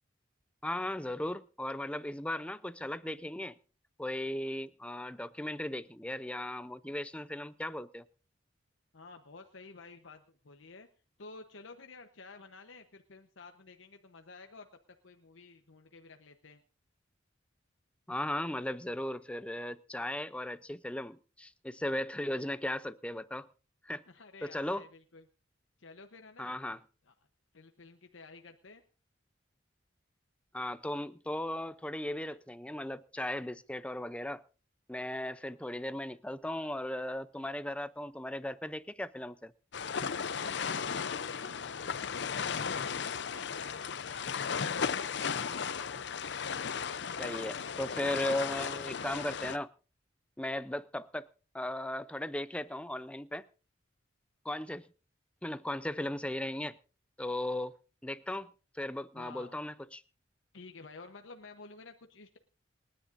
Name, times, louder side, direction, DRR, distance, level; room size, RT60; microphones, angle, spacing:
voice 1, 0.6-3.6 4.0-8.0 18.1-23.5 23.8-24.0 24.4-24.8 26.4-26.8 30.5-34.4 34.9-39.5 47.2-49.7 50.4-51.3 51.5-53.5 54.4-54.8 55.4-56.8 57.2-57.8 58.0-58.5 58.7-60.0, left 1 dB, 5° left, 0.5 m, -37 dB
voice 2, 8.9-10.9 11.2-14.7 15.0-16.6 24.1-25.2 25.8-26.5 27.0-27.1 27.5-28.8 39.9-45.7 59.1-59.6 60.5-62.4, left 3 dB, 85° left, 1.0 m, -52 dB
sound 1, 39.7-49.6, left 6 dB, 60° left, 0.6 m, -35 dB
27.5 x 10.0 x 2.6 m
head